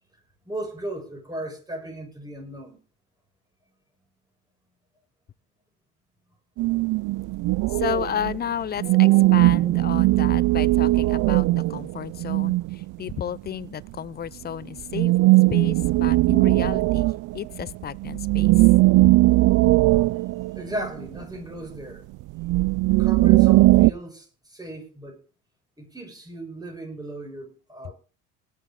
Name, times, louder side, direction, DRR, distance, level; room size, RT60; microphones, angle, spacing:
voice 1, 0.4-2.8 20.6-22.0 22.9-25.2 25.8-27.9, right 1 dB, 10° right, 6.1 m, -36 dB
sound 1, 6.6-8.4 8.8-13.2 14.9-17.6 18.0-21.2 22.2-23.9, right 19 dB, 45° right, 0.5 m, -19 dB
voice 2, 7.7-15.1 15.5-18.7 19.0-19.1 27.8-27.9, left 9 dB, 20° left, 0.5 m, -32 dB
19.5 x 7.4 x 3.7 m
hypercardioid pair, 70°, 45 cm